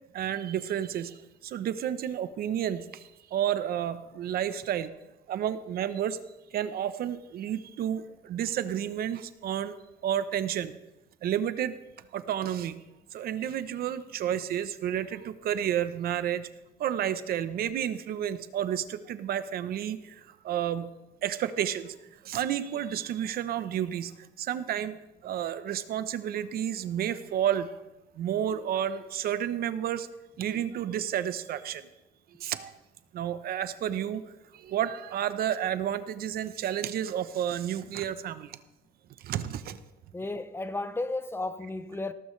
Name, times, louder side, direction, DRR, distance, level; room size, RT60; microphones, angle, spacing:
voice 1, 0.1-1.2 1.4-3.0 3.3-4.9 5.3-6.2 6.5-9.7 10.0-10.7 11.2-11.7 12.1-12.8 13.1-16.5 16.8-20.2 20.4-20.9 21.2-21.9 22.2-25.0 25.2-27.8 28.2-30.1 30.4-31.9 32.4-32.7 33.1-34.2 34.5-38.6 39.2-39.8, right 10 dB, 65° right, 0.9 m, -31 dB
voice 2, 40.1-42.1, left 2 dB, 15° left, 0.8 m, -33 dB
17.5 x 14.0 x 3.3 m
cardioid pair, 110°, 17 cm